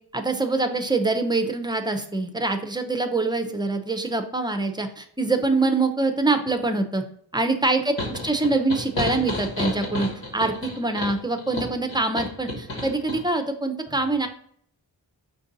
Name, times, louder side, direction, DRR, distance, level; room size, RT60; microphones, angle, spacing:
voice 1, 0.1-7.0 7.3-14.3, right 3 dB, 10° right, 7 dB, 0.6 m, -24 dB
sound 1, 8.0-13.2, left 1 dB, 75° left, 1.6 m, -31 dB
5.2 x 2.6 x 3.9 m, 0.63 s
wide cardioid pair, 50°, 43 cm